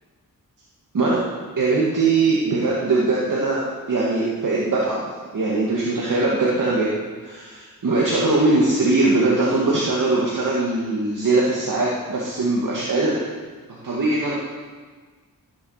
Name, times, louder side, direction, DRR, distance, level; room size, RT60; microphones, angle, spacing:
voice 1, 1.6-3.6 3.9-5.1 5.3-6.9 7.2-13.2 13.8-14.4, right 3 dB, 60° right, -5 dB, 2.3 m, -21 dB
17.0 x 7.5 x 6.6 m, 1.5 s
wide cardioid pair, 95°, 35 cm